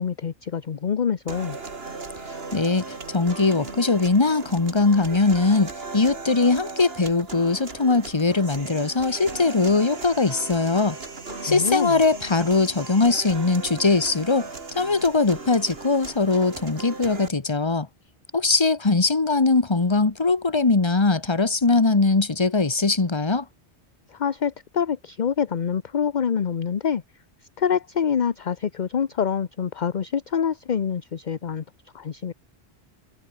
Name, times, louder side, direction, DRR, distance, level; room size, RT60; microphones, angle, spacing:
voice 1, 0.0-1.6 11.3-12.0 24.1-27.0 27.6-31.6 31.9-32.3, left 7 dB, 45° left, 0.9 m, -26 dB
sound 1, 1.3-17.3, right 4 dB, 60° right, 2.5 m, -37 dB
voice 2, 2.5-11.0 11.4-17.9 18.3-23.4, left 3 dB, 25° left, 1.3 m, -21 dB
omnidirectional pair, 1.1 m